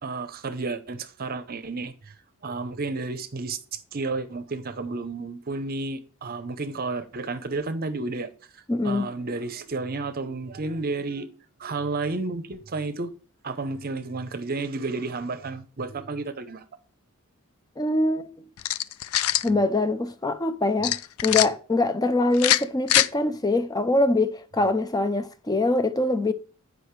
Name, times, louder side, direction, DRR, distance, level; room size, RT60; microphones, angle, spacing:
voice 1, 0.0-2.1 2.4-11.3 11.6-13.1 13.4-16.6, right 3 dB, 45° right, 0.7 m, -32 dB
voice 2, 8.7-9.1 17.8-18.5 19.4-26.3, left 2 dB, 20° left, 0.5 m, -24 dB
sound 1, 18.6-19.5 20.8-21.5 22.3-23.1, left 12 dB, 85° left, 0.4 m, -22 dB
8.4 x 5.1 x 4.6 m
head